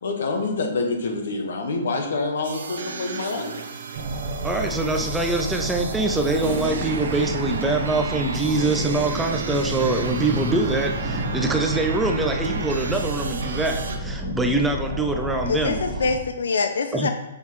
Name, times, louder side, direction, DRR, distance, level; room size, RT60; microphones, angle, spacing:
voice 1, 0.0-3.5, left 3 dB, 65° left, 3 dB, 1.4 m, -26 dB
sound 1, 2.4-14.0, right 4 dB, 70° right, 0.9 m, -33 dB
sound 2, 4.0-16.1, right 2 dB, 45° right, 1.0 m, -31 dB
voice 2, 4.4-15.8 16.9-17.1, right 2 dB, 5° right, 3 dB, 0.3 m, -24 dB
sound 3, 6.4-8.8, equal, 25° right, 1.6 m, -36 dB
voice 3, 15.5-17.1, left 4 dB, 85° left, 7 dB, 0.6 m, -25 dB
6.4 x 5.4 x 3.1 m, 1.0 s
hypercardioid pair, 175°, 0 cm